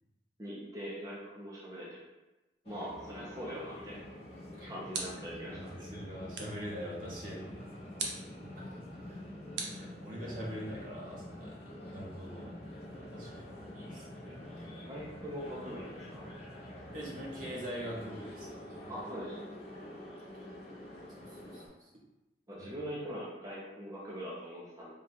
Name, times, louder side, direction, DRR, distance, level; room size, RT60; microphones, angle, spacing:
voice 1, 0.4-2.0 2.7-4.1 4.7-5.8 14.3-14.4 14.7-16.3 18.9-19.4 22.5-24.9, equal, 20° right, -7 dB, 0.7 m, -42 dB
sound 1, 2.6-21.7, left 1 dB, 35° left, 0.7 m, -46 dB
sound 2, 4.2-5.4 6.3-6.7 8.0-8.3 9.6-10.4, right 4 dB, 85° right, 0.7 m, -40 dB
voice 2, 5.5-7.9 8.4-8.8 9.1-9.2 9.5-12.6 12.9-14.3 16.9-18.9 21.1-21.9 22.6-22.7, equal, 50° right, -4 dB, 1.0 m, -44 dB
3.7 x 2.4 x 4.2 m, 1.0 s
head